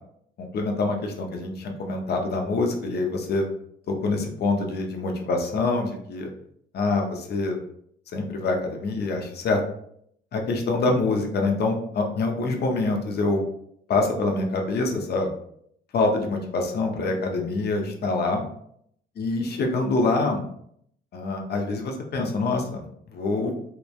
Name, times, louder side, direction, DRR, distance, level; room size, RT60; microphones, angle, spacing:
voice 1, 0.4-3.4 3.9-6.3 6.7-7.6 8.1-9.6 10.3-13.4 13.9-15.3 15.9-18.4 19.2-20.4 21.1-22.8 23.1-23.5, left 3 dB, 55° left, 3 dB, 0.6 m, -25 dB
3.0 x 2.1 x 2.4 m, 0.70 s
cardioid pair, 90°, 20 cm